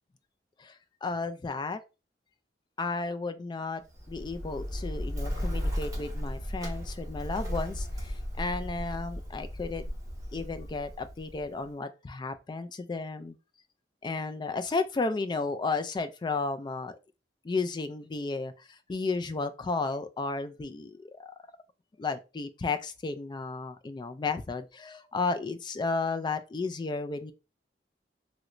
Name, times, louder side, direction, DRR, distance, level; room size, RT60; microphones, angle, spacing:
voice 1, 1.0-1.8 2.8-3.8 4.1-9.8 10.3-13.4 14.0-17.0 17.4-21.3 22.0-27.3, left 3 dB, 25° left, 0.3 m, -33 dB
Bird, 3.9-11.7, equal, 20° right, 1.2 m, -35 dB
3.0 x 3.0 x 2.5 m
head